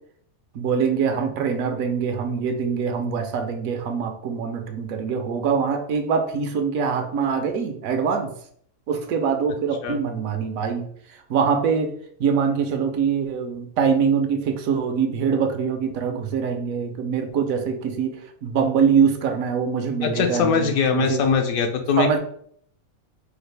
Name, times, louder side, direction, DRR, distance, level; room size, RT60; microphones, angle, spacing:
voice 1, 0.5-8.3 8.9-11.9 12.2-21.2 22.0-22.2, right 6 dB, 75° right, 6 dB, 1.0 m, -24 dB
voice 2, 20.0-22.2, left 6 dB, 75° left, 5 dB, 1.1 m, -21 dB
4.7 x 2.4 x 3.2 m, 0.64 s
omnidirectional pair, 1.5 m